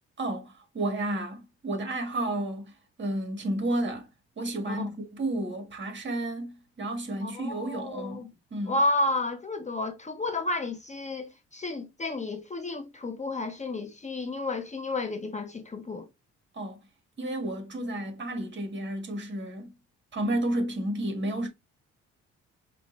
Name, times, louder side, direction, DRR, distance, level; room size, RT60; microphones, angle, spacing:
voice 1, 0.2-2.7 3.0-4.1 4.4-8.8 16.5-16.8 17.2-19.7 20.1-21.5, right 1 dB, 40° right, 1.6 m, -31 dB
voice 2, 7.2-8.3 8.7-16.1, left 2 dB, 25° left, 0.7 m, -31 dB
4.9 x 2.5 x 3.1 m
cardioid pair, 90°, 30 cm